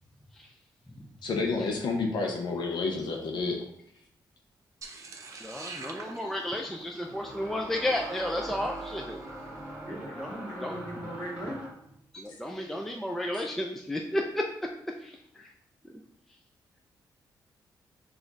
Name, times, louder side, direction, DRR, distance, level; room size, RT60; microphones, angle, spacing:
voice 1, 1.2-3.6, left 3 dB, 70° left, 1 dB, 0.6 m, -30 dB
sound 1, 4.8-9.1, right 4 dB, 45° right, 0.6 m, -46 dB
sound 2, 5.1-5.2 7.0-11.9, right 1 dB, 20° right, 1.4 m, -42 dB
voice 2, 5.4-9.2 9.8-10.3 10.6-10.7 12.1-14.4 15.0-15.5 15.8-16.0, left 1 dB, 5° left, 1 dB, 0.3 m, -33 dB
voice 3, 9.8-11.6, equal, 30° left, -3 dB, 1.8 m, -39 dB
5.0 x 2.4 x 3.9 m, 0.74 s
wide cardioid pair, 130°, 8 cm